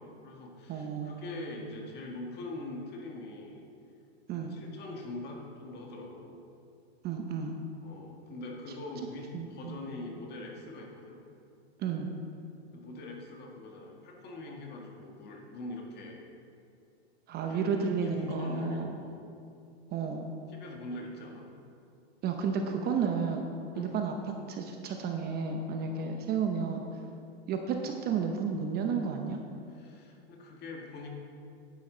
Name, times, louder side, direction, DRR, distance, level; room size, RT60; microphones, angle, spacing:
voice 1, 0.0-3.6 4.3-6.4 7.8-11.2 12.7-16.2 17.5-17.7 18.0-19.2 20.5-21.5 23.7-24.0 25.9-26.1 29.7-31.1, left 2 dB, 30° left, 0 dB, 1.8 m, -43 dB
voice 2, 0.7-1.5 4.3-4.6 7.0-7.6 9.3-9.8 11.8-12.1 17.3-19.0 19.9-20.3 22.2-23.4 23.8-26.8 27.5-29.4, right 5 dB, 30° right, 4 dB, 0.8 m, -32 dB
10.5 x 10.0 x 3.9 m, 2.5 s
supercardioid pair, 130°, 32 cm